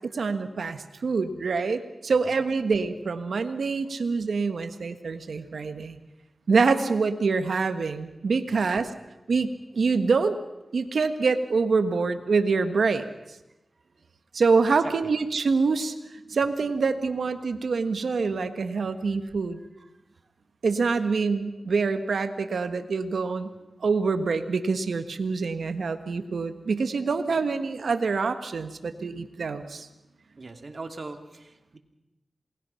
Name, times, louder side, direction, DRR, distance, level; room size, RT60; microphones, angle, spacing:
voice 1, 0.0-6.0 6.5-8.9 9.3-10.4 10.7-13.0 14.3-15.9 16.3-19.6 20.6-23.5 23.8-29.9, right 4 dB, 80° right, 9 dB, 1.5 m, -25 dB
voice 2, 2.1-2.5 3.8-4.0 8.5-8.8 14.8-15.1 19.8-19.9 30.4-31.8, right 3 dB, 55° right, 5 dB, 2.7 m, -42 dB
27.5 x 20.5 x 5.8 m, 0.96 s
cardioid pair, 50°, 0 cm